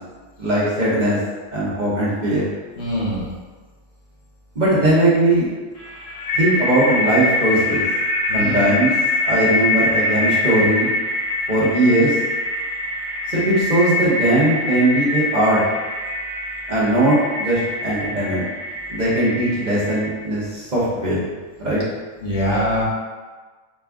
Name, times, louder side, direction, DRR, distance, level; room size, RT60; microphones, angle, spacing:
voice 1, 0.4-1.2 1.5-2.5 4.5-5.5 6.4-7.8 8.3-8.9 9.3-10.9 11.5-12.2 13.3-15.6 16.7-18.5 18.9-21.3 21.6-21.8, right 1 dB, 40° right, -8 dB, 0.9 m, -19 dB
voice 2, 2.8-3.3 8.3-8.7 22.2-22.8, equal, 65° left, -5 dB, 1.2 m, -23 dB
sound 1, 5.8-20.1, left 2 dB, 85° left, 1.3 m, -24 dB
4.2 x 2.4 x 3.5 m, 1.4 s
omnidirectional pair, 1.3 m